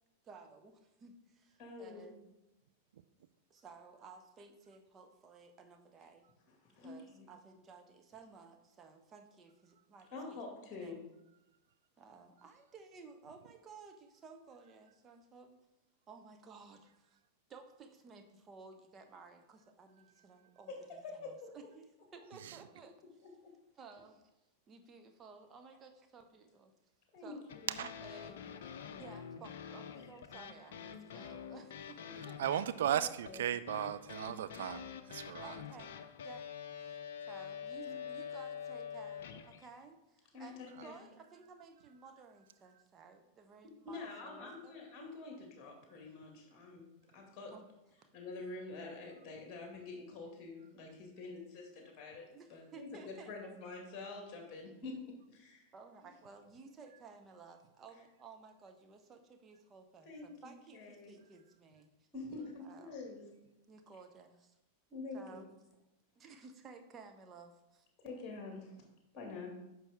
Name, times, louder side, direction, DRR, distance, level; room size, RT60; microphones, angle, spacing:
voice 1, 0.2-2.3 3.5-6.2 6.8-11.0 12.0-15.6 16.1-17.2 17.5-21.9 22.1-22.9 23.7-24.2 24.7-26.7 27.2-27.4 28.0-32.6 35.4-36.0 36.2-36.5 36.8-37.0 37.2-44.7 47.5-47.7 52.3-53.6 55.7-61.9 62.6-63.0 63.7-64.5 65.1-65.5 66.1-67.9, right 4 dB, 25° right, 6 dB, 1.0 m, -56 dB
voice 2, 1.6-2.2 6.8-7.3 10.1-11.0 21.2-21.3 22.2-22.3 27.1-27.8 32.8-33.4 37.8-38.0 40.3-41.0 43.8-46.9 47.1-47.5 48.1-55.7 60.1-61.1 62.1-63.2 64.9-65.4 68.0-68.7 69.1-69.5, left 3 dB, 30° left, 1 dB, 2.2 m, -47 dB
sound 1, 27.5-39.7, left 8 dB, 55° left, 0.6 m, -46 dB
voice 3, 32.4-35.6, right 10 dB, 60° right, 12 dB, 0.4 m, -36 dB
9.9 x 5.9 x 3.6 m, 0.96 s
figure-of-eight pair, 90°, 0 cm